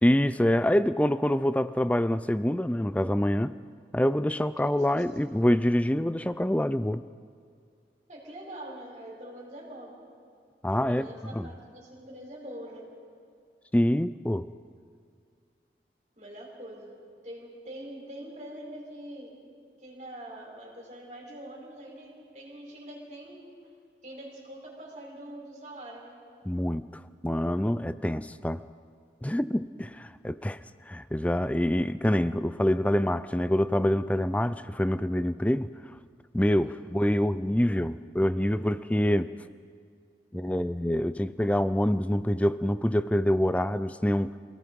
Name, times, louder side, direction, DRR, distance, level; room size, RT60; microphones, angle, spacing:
voice 1, 0.0-3.5 3.9-7.0 10.6-11.5 13.7-14.5 26.5-28.6 29.2-30.6 30.9-35.7 36.3-39.3 40.3-44.3, left 1 dB, 10° left, 14 dB, 0.4 m, -26 dB
voice 2, 8.1-10.0 10.8-12.9 16.2-17.0 17.2-19.3 19.8-23.7 24.0-26.2 36.6-36.9, right 1 dB, 40° right, -2 dB, 4.8 m, -44 dB
27.5 x 17.5 x 5.4 m, 2.3 s
head